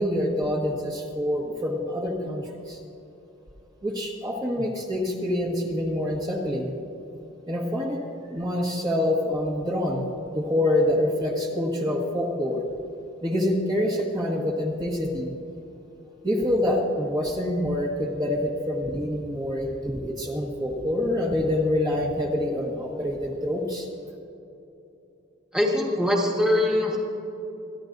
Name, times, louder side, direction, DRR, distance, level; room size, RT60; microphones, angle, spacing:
voice 1, 0.0-2.8 3.8-6.7 7.5-10.0 10.3-12.6 13.2-15.4 16.2-23.9, left 1 dB, 20° right, -3 dB, 1.5 m, -26 dB
voice 2, 25.5-27.0, left 1 dB, 5° right, -2 dB, 1.6 m, -22 dB
28.0 x 11.0 x 2.6 m, 2.9 s
head